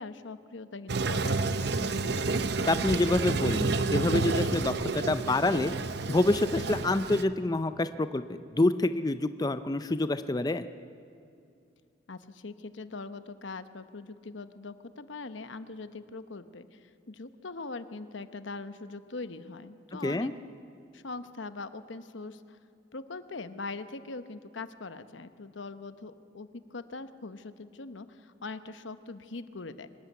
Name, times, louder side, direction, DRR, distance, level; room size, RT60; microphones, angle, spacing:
voice 1, 0.0-1.8 12.1-20.3 20.9-22.6 22.9-29.9, left 3 dB, 80° left, 11 dB, 1.0 m, -42 dB
Toilet flush, 0.9-7.2, right 3 dB, 60° right, 0.8 m, -30 dB
voice 2, 2.0-5.7 6.1-10.7 20.0-20.3, left 2 dB, 20° left, 11 dB, 0.4 m, -27 dB
24.5 x 12.5 x 9.4 m, 2.5 s
head